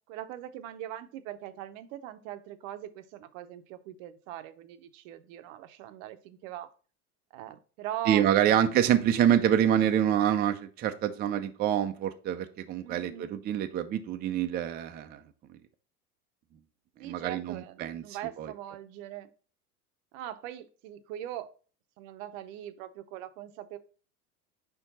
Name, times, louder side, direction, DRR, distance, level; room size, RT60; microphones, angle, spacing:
voice 1, 0.1-6.7 7.3-9.0 12.8-13.4 17.0-19.3 20.1-21.5 22.0-23.8, right 12 dB, 55° right, 12 dB, 0.7 m, -41 dB
voice 2, 8.1-15.2 17.0-18.0 18.4-18.5, right 10 dB, 20° right, 7 dB, 0.4 m, -26 dB
5.1 x 4.5 x 4.1 m, 0.38 s
hypercardioid pair, 100°, 46 cm